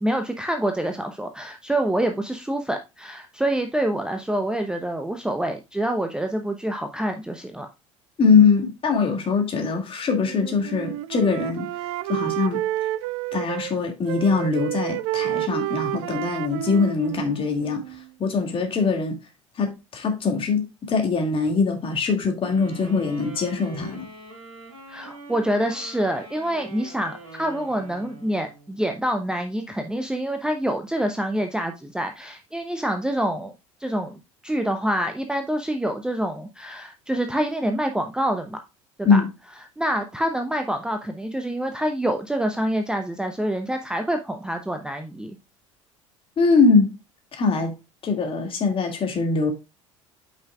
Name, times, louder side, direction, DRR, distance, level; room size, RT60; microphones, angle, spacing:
voice 1, 0.0-7.7 24.9-33.5 33.8-38.6 39.0-39.2 39.8-45.3, right 1 dB, 5° right, 0.8 m, -26 dB
voice 2, 8.2-11.7 12.1-12.6 13.3-17.8 18.2-19.2 19.6-24.1 39.0-39.3 46.4-46.9 47.4-47.7 48.0-49.5, left 4 dB, 30° left, 2.3 m, -22 dB
Wind instrument woodwind instrument, 10.2-13.7 14.1-18.1, right 16 dB, 55° right, 0.4 m, -30 dB
sound 1, 22.4-28.8, right 3 dB, 75° right, 2.5 m, -43 dB
8.6 x 5.7 x 2.4 m
figure-of-eight pair, 65°, 17 cm